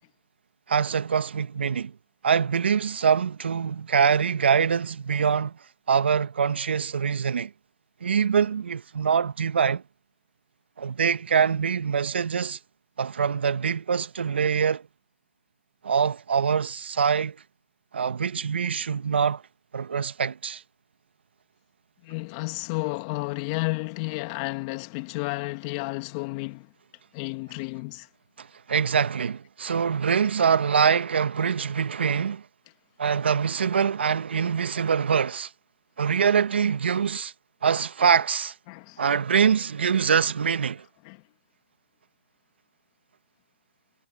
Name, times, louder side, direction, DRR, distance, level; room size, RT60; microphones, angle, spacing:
voice 1, 0.7-1.9 2.2-5.6 5.9-7.5 8.0-9.8 10.8-12.6 13.0-14.9 15.8-17.4 17.9-19.4 19.7-20.6 28.4-32.4 33.0-35.5 36.0-37.3 37.6-38.5 39.0-40.8, right 6 dB, 75° right, 1.5 m, -24 dB
voice 2, 22.0-26.7 27.1-28.1 38.7-39.0 41.0-41.2, left 25 dB, 30° left, 2.4 m, -32 dB
hypercardioid pair, 145°, 6 cm